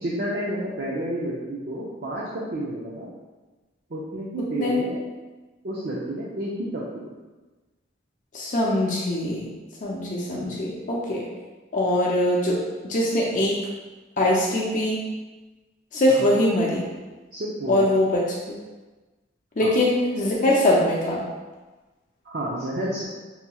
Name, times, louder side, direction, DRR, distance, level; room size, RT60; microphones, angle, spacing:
voice 1, 0.0-3.1 3.9-5.0 5.6-7.1 10.3-10.6 16.1-16.4 17.3-17.9 19.6-19.8 22.2-23.0, right 1 dB, 50° right, -5 dB, 0.5 m, -30 dB
voice 2, 8.3-9.5 9.8-11.3 11.7-12.6 12.9-13.6 14.2-15.0 15.9-16.8 17.7-18.2 18.5-18.6 19.6-21.2, left 1 dB, 40° left, -4 dB, 0.5 m, -22 dB
5.5 x 3.0 x 2.3 m, 1.2 s
head